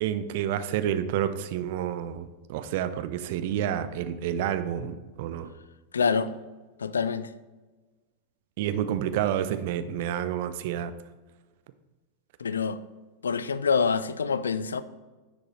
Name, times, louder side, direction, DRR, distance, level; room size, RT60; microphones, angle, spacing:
voice 1, 0.0-5.5 8.6-10.9, right 10 dB, 50° right, 0.4 m, -29 dB
voice 2, 5.9-6.3 6.8-7.3 12.4-12.8 13.2-14.8, left 5 dB, 70° left, 0.3 m, -26 dB
9.8 x 4.8 x 3.1 m
figure-of-eight pair, 90°, 0 cm